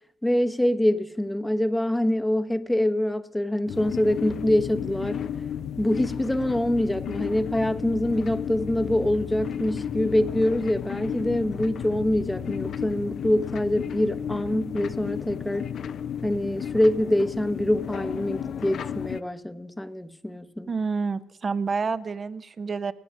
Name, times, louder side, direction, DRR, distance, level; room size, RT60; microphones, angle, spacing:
voice 1, 0.2-5.2 5.8-15.7 16.2-20.7, left 1 dB, 5° left, 0.8 m, -25 dB
sound 1, 3.7-19.2, left 8 dB, 65° left, 0.6 m, -33 dB
voice 2, 20.7-22.9, right 5 dB, 40° right, 0.7 m, -28 dB
19.5 x 7.9 x 6.0 m
cardioid pair, 80°, 0 cm